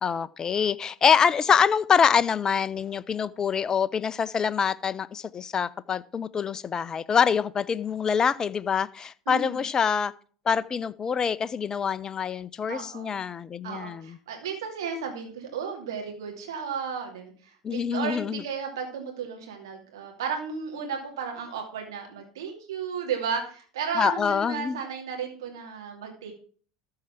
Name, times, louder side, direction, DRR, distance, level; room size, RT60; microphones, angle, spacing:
voice 1, 0.0-10.1 10.5-14.2 17.6-18.4 24.0-24.8, left 7 dB, 25° left, 0.6 m, -25 dB
voice 2, 9.3-9.7 12.7-13.2 13.6-26.3, right 6 dB, 70° right, 2.6 m, -34 dB
13.5 x 4.8 x 5.9 m
figure-of-eight pair, 75°, 2 cm